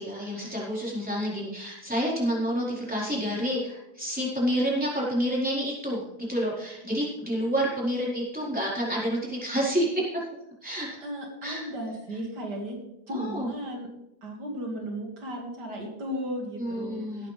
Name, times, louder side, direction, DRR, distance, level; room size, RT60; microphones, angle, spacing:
voice 1, 0.0-6.0 6.3-10.2 10.6-11.0 11.4-11.6 13.1-13.5 16.6-17.3, equal, 5° right, -6 dB, 4.3 m, -29 dB
voice 2, 11.0-12.8 13.1-13.9 14.2-17.3, equal, 75° right, 0 dB, 2.7 m, -35 dB
18.5 x 8.9 x 3.4 m, 0.88 s
omnidirectional pair, 1.8 m